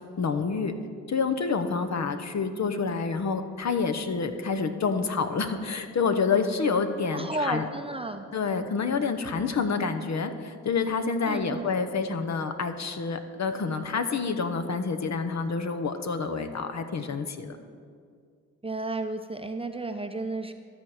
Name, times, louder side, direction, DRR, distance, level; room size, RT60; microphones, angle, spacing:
voice 1, 0.2-0.7 1.1-7.6 8.3-17.6, left 5 dB, 45° left, 8 dB, 0.8 m, -28 dB
voice 2, 7.1-8.3 11.2-11.6 18.6-20.5, right 2 dB, 15° right, 7 dB, 0.7 m, -32 dB
13.0 x 4.3 x 6.4 m, 2.2 s
supercardioid pair, 45°, 37 cm